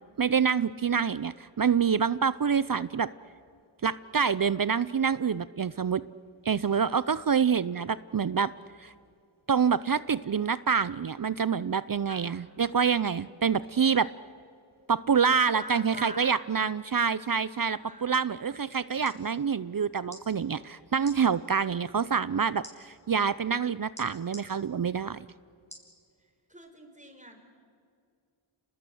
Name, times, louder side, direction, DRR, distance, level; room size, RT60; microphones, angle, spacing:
voice 1, 0.2-3.1 3.8-6.0 6.5-8.5 8.8-8.9 9.5-14.1 14.9-25.2, right 6 dB, 45° right, 17 dB, 0.6 m, -26 dB
voice 2, 15.5-16.3 17.6-18.4 26.5-27.4, right 1 dB, 15° right, 4 dB, 4.7 m, -44 dB
sound 1, 19.0-19.2 20.0-20.2 21.0-21.2 22.6-22.8 24.0-24.5 25.7-25.9 26.5-26.6, equal, 15° left, 6.2 m, -46 dB
30.0 x 20.0 x 7.8 m, 2.4 s
wide cardioid pair, 50°, 48 cm